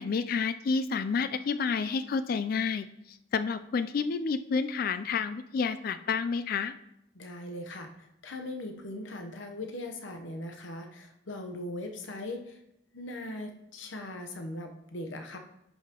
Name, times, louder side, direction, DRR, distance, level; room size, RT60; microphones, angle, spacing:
voice 1, 0.0-2.9 3.3-6.7, left 5 dB, 45° left, 12 dB, 0.3 m, -29 dB
voice 2, 7.1-12.6 12.9-15.4, left 1 dB, 70° left, 5 dB, 0.8 m, -40 dB
11.0 x 5.6 x 2.9 m, 0.80 s
head